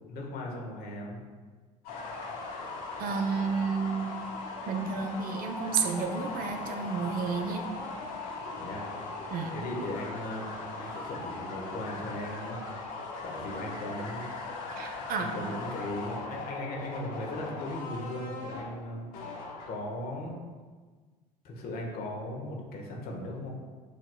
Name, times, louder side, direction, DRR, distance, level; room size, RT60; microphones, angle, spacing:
voice 1, 0.1-1.2 8.6-8.9 9.5-12.6 13.2-14.2 15.2-20.4 21.4-23.5, left 1 dB, 55° left, -1 dB, 1.1 m, -38 dB
sound 1, 1.8-20.0, left 3 dB, 75° left, 1.0 m, -39 dB
voice 2, 3.0-4.2 4.7-7.6 9.3-9.5 13.5-13.6 14.8-15.5, right 5 dB, 50° right, 5 dB, 0.5 m, -31 dB
7.8 x 2.9 x 2.2 m, 1.4 s
hypercardioid pair, 65°, 19 cm